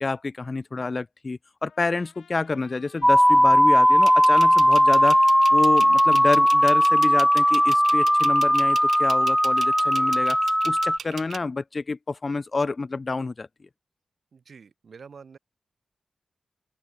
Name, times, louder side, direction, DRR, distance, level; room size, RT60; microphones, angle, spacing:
voice 1, 0.0-5.2 5.5-10.4 10.6-13.5, left 3 dB, 35° left, 1.0 m, -28 dB
Trumpet, 1.7-10.8, left 7 dB, 90° left, 4.0 m, -54 dB
sound 1, 3.0-11.0, equal, ahead, 0.4 m, -18 dB
sound 2, 4.0-11.4, right 7 dB, 90° right, 1.3 m, -38 dB
voice 2, 14.3-15.4, right 5 dB, 60° right, 5.6 m, -47 dB
open air
wide cardioid pair, 120°, 0 cm